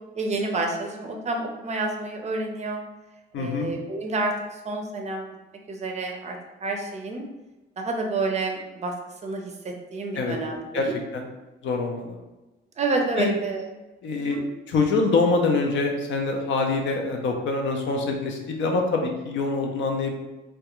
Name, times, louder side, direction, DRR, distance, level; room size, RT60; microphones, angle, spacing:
voice 1, 0.2-2.8 3.4-5.3 5.7-7.2 7.8-8.9 9.2-11.0 12.8-13.7 14.2-14.4, right 3 dB, 35° right, 2 dB, 0.4 m, -29 dB
voice 2, 3.3-3.7 10.2-10.4 10.7-10.9 11.1-11.2 11.6-12.2 13.2-13.3 14.0-14.4 14.7-20.1, left 3 dB, 70° left, 2 dB, 0.5 m, -24 dB
2.3 x 2.2 x 2.9 m, 1.1 s
cardioid pair, 90°, 20 cm